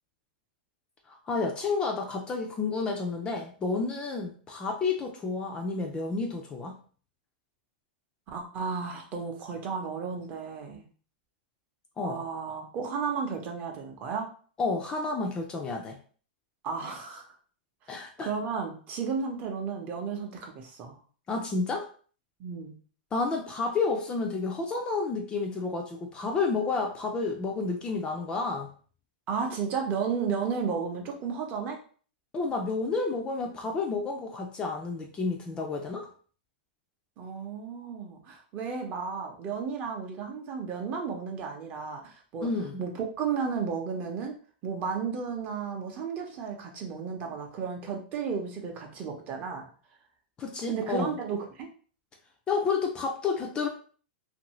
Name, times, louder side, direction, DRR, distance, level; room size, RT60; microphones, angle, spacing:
voice 1, 1.1-6.8 12.0-12.2 14.6-16.0 17.9-18.3 21.3-21.9 23.1-28.7 32.3-36.1 42.4-42.8 50.4-51.2 52.5-53.7, left 4 dB, 15° left, 2 dB, 0.4 m, -30 dB
voice 2, 8.3-10.9 12.0-14.3 16.6-17.4 18.2-21.0 22.4-22.8 29.3-31.8 37.2-42.5 42.8-42.9 43.2-44.3 44.6-49.7 50.7-51.7, right 6 dB, 30° right, 2 dB, 0.7 m, -33 dB
2.6 x 2.6 x 3.0 m, 0.42 s
hypercardioid pair, 145°, 5 cm